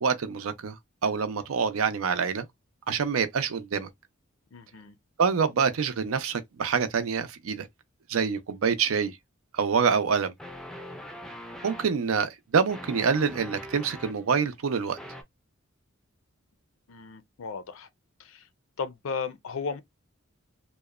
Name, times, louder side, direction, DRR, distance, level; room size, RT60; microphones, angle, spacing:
voice 1, 0.0-0.8 1.0-2.5 2.9-3.9 5.2-7.7 8.1-9.2 9.5-10.3 11.6-15.0, right 6 dB, 80° right, 0.5 m, -26 dB
voice 2, 4.5-4.9 16.9-17.9 18.2-18.5 18.8-19.8, left 5 dB, 70° left, 0.5 m, -35 dB
sound 1, 9.6-9.7 10.4-11.9 12.7-14.2 15.0-15.2, equal, 5° left, 0.4 m, -42 dB
2.8 x 2.1 x 2.3 m
head